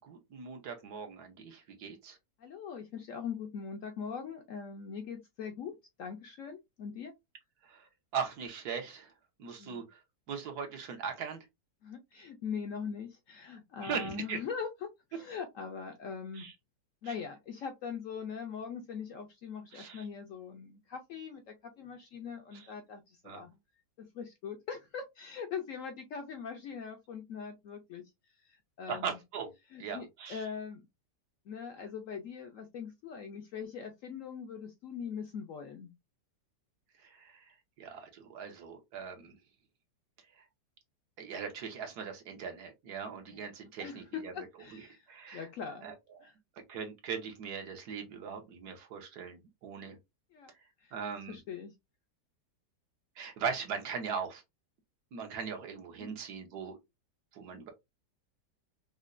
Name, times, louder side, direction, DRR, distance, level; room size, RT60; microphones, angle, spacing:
voice 1, 0.0-2.2 7.7-7.8 8.1-9.1 9.4-9.8 10.3-11.4 13.8-14.4 16.4-16.5 17.0-17.1 19.7-20.0 22.5-22.7 23.2-23.4 28.9-29.5 29.8-30.4 37.0-37.4 37.8-39.4 41.2-44.3 44.7-44.8 45.1-45.5 45.8-45.9 46.7-50.0 50.9-51.4 53.2-54.4 55.1-56.8 57.3-57.7, right 6 dB, 70° right, 1.4 m, -39 dB
voice 2, 2.4-7.1 9.6-9.9 11.8-16.5 17.0-23.5 24.0-28.0 28.4-29.2 29.7-30.8 31.5-35.9 43.3-43.4 43.8-45.1 45.3-45.9 46.2-46.3 50.3-50.5 50.8-50.9 51.3-51.7 56.0-56.2, left 6 dB, 70° left, 0.8 m, -41 dB
5.2 x 2.2 x 2.5 m
omnidirectional pair, 1.8 m